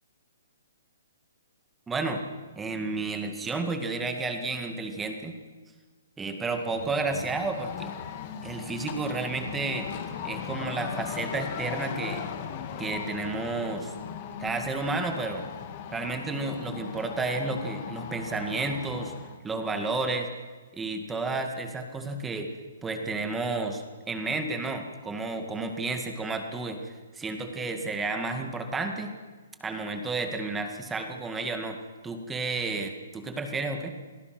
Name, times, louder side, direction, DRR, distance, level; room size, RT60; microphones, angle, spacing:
voice 1, 1.9-2.2 2.6-5.4 6.2-7.9 8.4-9.9 10.2-12.2 12.8-13.9 14.4-15.5 15.9-19.1 19.4-20.3 20.7-22.5 22.8-29.1 29.6-31.8 32.0-33.9, right 3 dB, 10° right, 5 dB, 2.0 m, -31 dB
sound 1, 6.6-19.4, left 8 dB, 35° left, 2.1 m, -38 dB
27.0 x 18.5 x 6.1 m, 1.4 s
hypercardioid pair, 160°, 0 cm